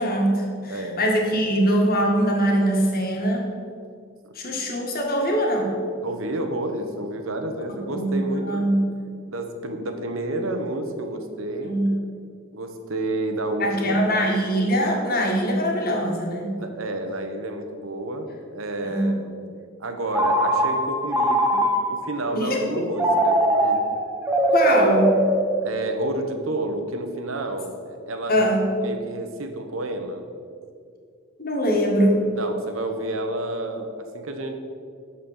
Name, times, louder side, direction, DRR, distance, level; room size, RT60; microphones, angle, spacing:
voice 1, 0.0-3.4 4.4-5.7 7.9-8.9 11.6-11.9 13.6-16.5 18.8-19.2 22.3-22.9 24.5-25.1 28.3-28.6 31.4-32.2, equal, 50° left, 0 dB, 1.8 m, -22 dB
voice 2, 0.7-1.0 6.0-8.7 9.3-11.7 12.5-14.0 16.6-19.3 19.8-23.8 25.6-28.4 28.8-30.2 32.3-34.6, right 1 dB, 85° right, 6 dB, 1.1 m, -30 dB
Telephone, 20.1-22.1 23.0-26.0, right 1 dB, 10° right, 0.9 m, -21 dB
12.0 x 4.3 x 7.3 m, 2.3 s
head